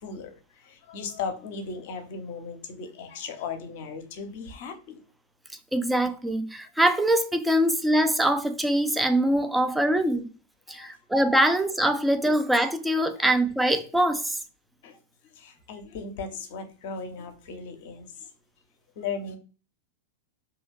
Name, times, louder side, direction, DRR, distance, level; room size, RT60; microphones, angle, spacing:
voice 1, 0.0-5.0 10.7-11.0 13.1-13.2 14.8-14.9 15.3-18.3 19.0-19.4, left 5 dB, 50° left, 0.6 m, -37 dB
voice 2, 5.7-10.3 10.7-14.4, right 1 dB, 5° right, 0.4 m, -23 dB
3.0 x 2.3 x 3.2 m
figure-of-eight pair, 90°, 0 cm